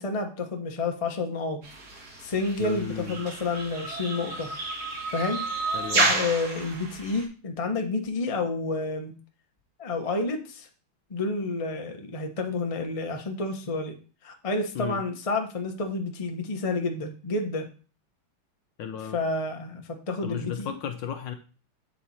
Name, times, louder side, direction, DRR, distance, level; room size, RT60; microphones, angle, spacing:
voice 1, 0.0-1.6 2.2-4.5 5.1-5.4 5.9-9.1 9.8-10.7 11.1-13.9 14.2-17.7 19.1-20.7, left 3 dB, 30° left, 3 dB, 0.6 m, -30 dB
sound 1, 1.6-7.2, right 3 dB, 50° right, 2.1 m, -30 dB
voice 2, 2.6-3.2 5.7-6.1 14.7-15.0 18.8-19.2 20.2-21.3, left 8 dB, 70° left, 7 dB, 1.3 m, -34 dB
8.3 x 4.5 x 4.2 m, 0.36 s
omnidirectional pair, 2.4 m